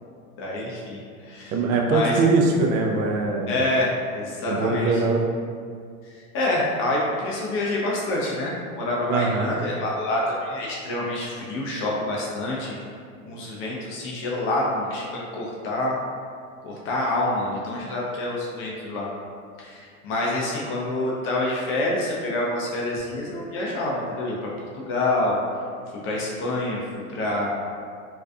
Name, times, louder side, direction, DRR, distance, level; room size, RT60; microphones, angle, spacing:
voice 1, 0.4-1.5 1.9-2.2 3.5-4.9 6.0-12.8 13.2-15.1 15.3-16.0 16.6-19.1 19.6-25.4 26.0-27.5, left 1 dB, 30° left, -4 dB, 0.4 m, -27 dB
voice 2, 1.5-3.6 4.5-5.2 9.1-9.5, right 3 dB, 65° right, 1 dB, 0.5 m, -22 dB
2.5 x 2.2 x 2.3 m, 2.2 s
hypercardioid pair, 100°, 43 cm